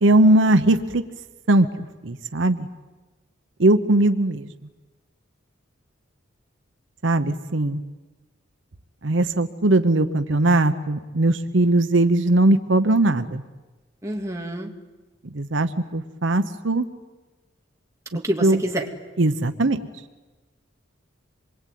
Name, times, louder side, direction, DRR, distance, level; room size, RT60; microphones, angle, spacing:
voice 1, 0.0-1.0 1.5-1.7 2.0-2.7 3.6-4.5 7.0-7.8 9.0-13.4 15.3-16.9 18.4-18.6 19.2-19.8, right 2 dB, 70° right, 9 dB, 1.0 m, -19 dB
voice 2, 14.0-14.7 18.1-18.9, right 1 dB, 15° right, 1 dB, 2.5 m, -27 dB
26.5 x 23.0 x 9.4 m, 1.2 s
head